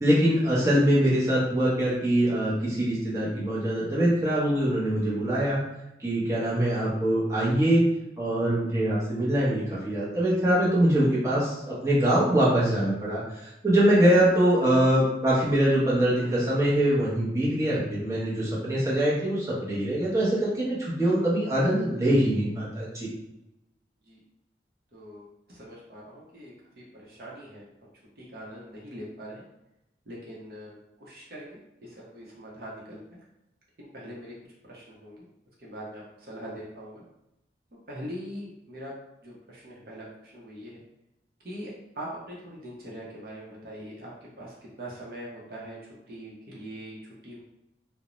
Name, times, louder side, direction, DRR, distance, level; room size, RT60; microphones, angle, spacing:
voice 1, 0.0-5.6 6.0-7.8 8.2-23.1, right 1 dB, 15° right, -8 dB, 0.7 m, -23 dB
voice 2, 24.9-25.2 25.5-27.6 28.2-29.4 30.1-31.6 32.1-33.0 33.8-34.3 34.7-35.2 35.6-37.0 37.9-38.9 39.2-40.1 40.3-40.8 41.4-44.1 44.4-45.8 46.1-47.0 47.2-47.4, equal, 55° right, -5 dB, 0.7 m, -42 dB
2.5 x 2.0 x 2.9 m, 0.89 s
head